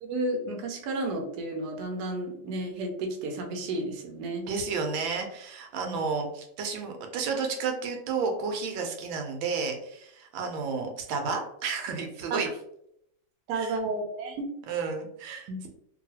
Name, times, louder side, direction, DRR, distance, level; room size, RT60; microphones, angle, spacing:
voice 1, 0.0-4.4 5.8-6.0 12.3-12.4 13.5-14.5 15.5-15.7, right 2 dB, 70° right, 3 dB, 1.0 m, -32 dB
voice 2, 4.5-12.5 13.5-13.7 14.7-15.5, right 5 dB, 85° right, 4 dB, 1.4 m, -31 dB
2.9 x 2.6 x 2.7 m, 0.74 s
omnidirectional pair, 2.1 m